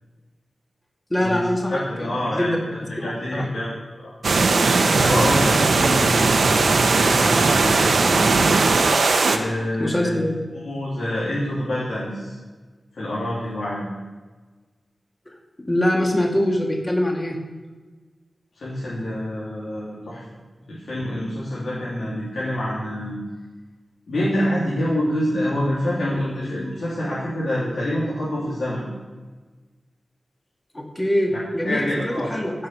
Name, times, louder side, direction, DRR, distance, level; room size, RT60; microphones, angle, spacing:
voice 1, 1.1-1.9 2.3-2.6 3.0-3.5 9.8-10.4 15.3-15.4 15.7-17.4 30.7-32.5, left 1 dB, 20° left, 0 dB, 2.1 m, -23 dB
voice 2, 1.7-3.7 4.0-4.1 5.0-8.3 9.3-10.1 10.5-12.3 12.9-13.9 18.5-20.2 20.7-23.1 24.1-28.8 31.6-32.3, left 1 dB, 80° left, -9 dB, 3.2 m, -26 dB
sound 1, 4.2-9.4, right 3 dB, 75° right, 0.9 m, -18 dB
15.0 x 6.5 x 5.7 m, 1.3 s
wide cardioid pair, 90°, 0 cm